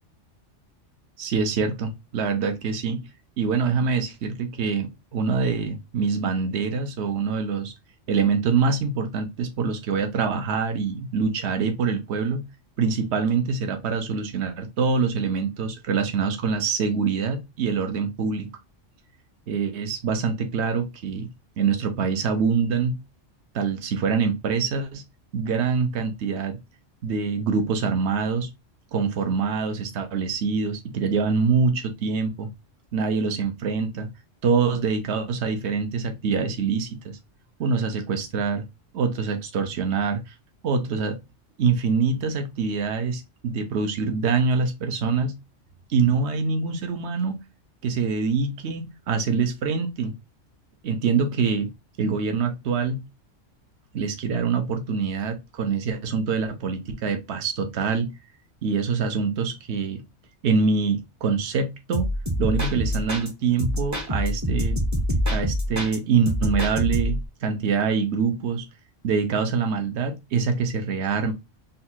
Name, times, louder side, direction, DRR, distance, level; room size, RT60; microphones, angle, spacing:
voice 1, 1.2-3.0 3.4-7.7 8.1-12.4 12.8-18.5 19.5-21.3 21.6-23.0 23.5-25.0 25.3-26.6 27.0-28.5 28.9-32.5 32.9-34.1 34.4-37.2 37.6-38.6 38.9-40.3 40.6-41.2 41.6-45.3 45.9-47.4 47.8-50.1 50.8-51.7 52.0-53.0 53.9-58.1 58.6-60.0 60.4-62.1 62.4-64.8 65.3-68.6 69.0-71.3, right 5 dB, 65° right, 1.0 m, -25 dB
sound 1, 61.9-63.3 63.6-66.0 66.3-67.3, equal, 20° right, 0.6 m, -26 dB
4.0 x 2.3 x 2.7 m
omnidirectional pair, 1.3 m